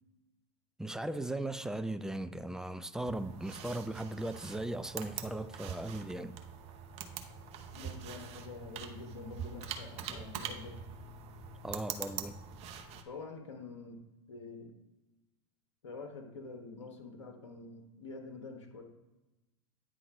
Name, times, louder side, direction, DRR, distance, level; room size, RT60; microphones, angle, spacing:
voice 1, 0.8-6.3 10.1-10.3 11.6-12.4, right 1 dB, 5° right, 0.4 m, -38 dB
sound 1, 3.1-13.0, right 7 dB, 45° right, 0.9 m, -44 dB
voice 2, 7.7-10.8 13.0-14.0 14.3-14.7 15.8-18.8, left 3 dB, 80° left, 1.2 m, -46 dB
9.3 x 3.8 x 4.7 m
hypercardioid pair, 90°, 15 cm